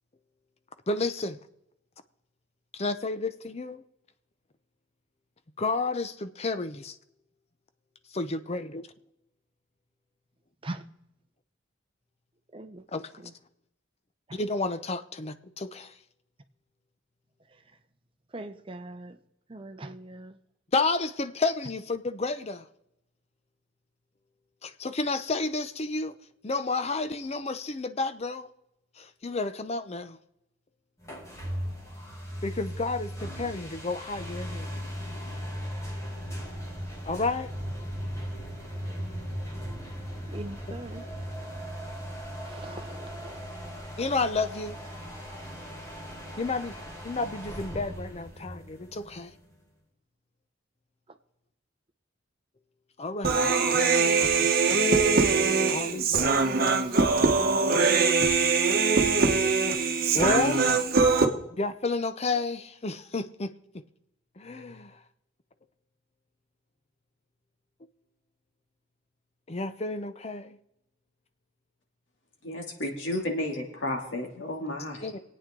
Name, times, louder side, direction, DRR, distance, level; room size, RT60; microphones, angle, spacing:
voice 1, 0.9-1.4 2.7-3.8 5.6-7.0 8.1-8.9 12.9-13.1 14.3-15.9 20.7-22.7 24.6-26.1 26.4-28.5 29.0-30.2 32.4-34.7 37.1-37.5 40.7-40.8 44.0-44.8 46.4-46.7 47.0-49.3 53.0-53.6 54.2-54.5 55.7-56.4 60.1-60.6 61.6-63.8 64.4-65.0 69.5-70.6 75.0-75.2, left 3 dB, 30° left, 0.6 m, -31 dB
voice 2, 12.5-12.8 13.2-13.3 14.3-14.4 18.3-19.2 19.5-20.4 40.3-41.1 42.4-43.4, right 2 dB, 25° right, 0.7 m, -41 dB
sound 1, 31.0-49.5, equal, 15° left, 2.3 m, -38 dB
Human voice, 53.2-61.3, right 4 dB, 50° right, 1.2 m, -22 dB
voice 3, 72.4-75.1, left 1 dB, 65° left, 2.7 m, -32 dB
25.0 x 8.9 x 3.8 m
head